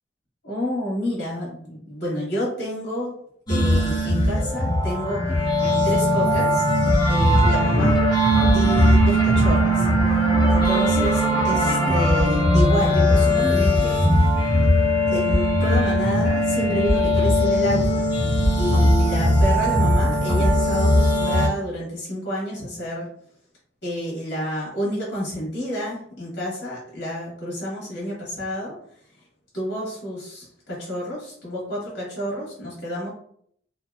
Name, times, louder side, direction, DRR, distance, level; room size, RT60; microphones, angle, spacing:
voice 1, 0.4-3.1 3.5-5.2 5.8-6.6 7.0-8.0 8.5-14.2 15.1-18.0 18.5-23.1 23.8-28.7 29.5-33.1, equal, 60° left, -5 dB, 1.3 m, -29 dB
sound 1, 3.5-21.5, equal, 25° left, 1.0 m, -19 dB
2.9 x 2.7 x 2.2 m, 0.65 s
head